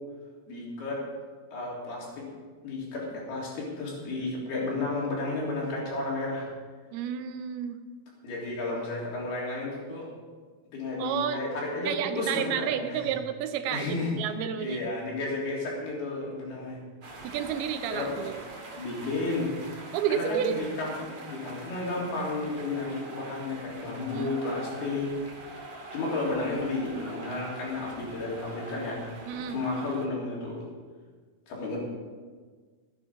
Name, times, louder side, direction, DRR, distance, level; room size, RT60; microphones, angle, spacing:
voice 1, 0.5-1.0 1.5-2.3 2.6-6.5 8.2-10.1 10.7-13.1 13.7-14.1 14.6-16.8 17.9-18.2 18.8-19.5 20.1-20.9 21.3-25.2 25.9-29.0 29.3-30.6 31.5-31.8, left 2 dB, 90° left, -4 dB, 5.2 m, -32 dB
voice 2, 6.9-7.8 11.0-11.4 11.8-14.9 17.2-18.3 19.9-20.6 24.1-25.0 29.3-29.6, right 9 dB, 85° right, 8 dB, 2.8 m, -31 dB
sound 1, 17.0-30.1, right 2 dB, 40° right, 2.0 m, -44 dB
15.0 x 9.7 x 5.3 m, 1.5 s
omnidirectional pair, 4.4 m